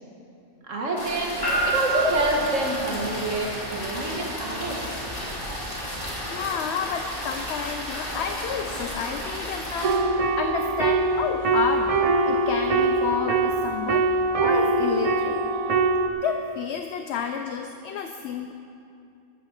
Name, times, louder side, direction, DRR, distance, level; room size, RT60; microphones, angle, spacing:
voice 1, 0.7-4.9, right 1 dB, 80° right, -1 dB, 1.8 m, -27 dB
sound 1, 1.0-10.0, equal, 45° left, 2.8 m, -34 dB
sound 2, 1.4-15.7, right 2 dB, 15° right, 3.5 m, -36 dB
voice 2, 6.3-11.9 12.3-14.1 14.4-15.4 16.2-18.5, left 7 dB, 65° left, 6 dB, 0.8 m, -30 dB
sound 3, 9.8-16.1, right 3 dB, 50° right, 0.4 m, -23 dB
13.0 x 12.5 x 4.4 m, 2.6 s
omnidirectional pair, 1.3 m